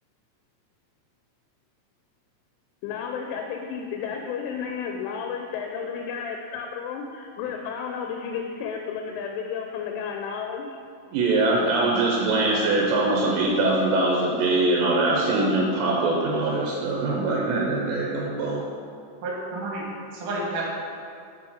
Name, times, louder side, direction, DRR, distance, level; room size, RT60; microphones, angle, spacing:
voice 1, 2.8-10.8, left 6 dB, 85° left, 2 dB, 2.7 m, -32 dB
voice 2, 11.1-18.6, right 2 dB, 85° right, -2 dB, 3.1 m, -23 dB
voice 3, 19.2-20.6, right 2 dB, 60° right, -4 dB, 2.3 m, -31 dB
6.1 x 6.0 x 3.7 m, 2.3 s
omnidirectional pair, 5.0 m